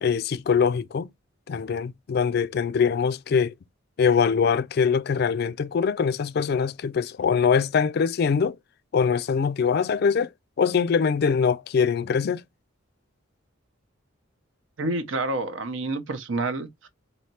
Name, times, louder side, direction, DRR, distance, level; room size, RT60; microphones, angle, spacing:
voice 1, 0.0-1.1 1.5-3.5 4.0-8.6 8.9-10.3 10.6-12.4, left 6 dB, 50° left, 0.3 m, -23 dB
voice 2, 14.8-16.9, right 2 dB, 75° right, 0.9 m, -28 dB
4.1 x 3.2 x 2.8 m
head